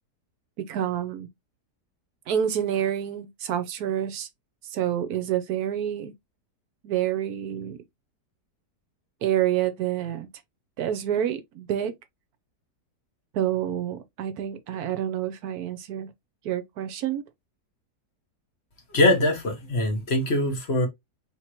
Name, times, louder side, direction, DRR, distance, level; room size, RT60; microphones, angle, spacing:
voice 1, 0.7-1.3 2.3-4.3 4.7-6.1 6.8-7.8 9.2-10.3 10.8-11.9 13.3-16.1 16.4-17.2, right 10 dB, 70° right, 1.1 m, -28 dB
voice 2, 18.9-20.9, left 1 dB, 40° left, 1.4 m, -22 dB
4.5 x 3.6 x 2.9 m
omnidirectional pair, 1.8 m